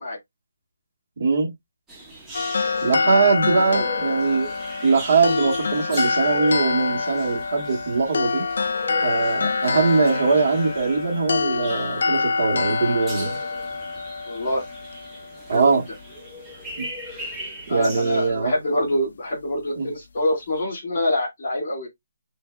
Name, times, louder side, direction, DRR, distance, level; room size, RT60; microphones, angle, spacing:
voice 1, 1.2-1.5 2.8-4.5 4.8-8.4 9.0-13.4 15.5-15.8 16.8-16.9 17.7-18.5 19.8-19.9, right 4 dB, 40° right, 1.3 m, -21 dB
sound 1, 1.9-18.3, equal, 5° right, 0.8 m, -40 dB
sound 2, 2.3-15.6, left 4 dB, 50° left, 0.4 m, -26 dB
voice 2, 14.3-14.6 15.5-15.8 17.7-21.9, left 1 dB, 30° left, 2.8 m, -25 dB
6.7 x 2.6 x 2.2 m
hypercardioid pair, 175°, 0 cm